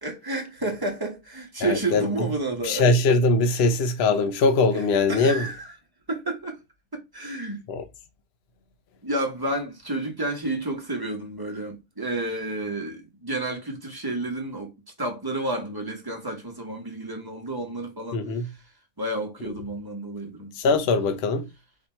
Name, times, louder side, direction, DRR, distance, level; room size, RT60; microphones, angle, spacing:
voice 1, 0.0-2.9 3.6-3.7 4.1-4.3 4.7-5.8 6.1-6.6 6.9-7.6 9.0-14.7 15.0-20.5, right 2 dB, 15° right, 1.0 m, -31 dB
voice 2, 1.6-2.0 2.7-5.5 7.7-7.8 18.1-18.5 20.6-21.5, left 3 dB, 50° left, 0.8 m, -21 dB
4.0 x 2.9 x 4.4 m
omnidirectional pair, 1.7 m